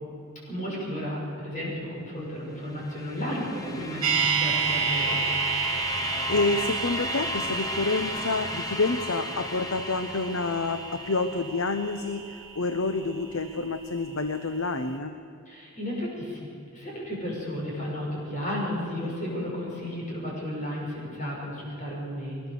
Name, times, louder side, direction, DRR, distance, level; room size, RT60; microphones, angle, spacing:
voice 1, 0.5-5.2 15.5-22.5, equal, 35° left, -3 dB, 6.5 m, -33 dB
sound 1, 2.6-11.5, left 3 dB, 15° left, 1.2 m, -36 dB
sound 2, 4.0-14.1 14.3-14.4, right 6 dB, 60° right, 2.9 m, -31 dB
voice 2, 5.7-15.2 19.0-19.1, left 3 dB, 70° left, 8 dB, 0.9 m, -28 dB
22.0 x 19.5 x 6.8 m, 2.6 s
head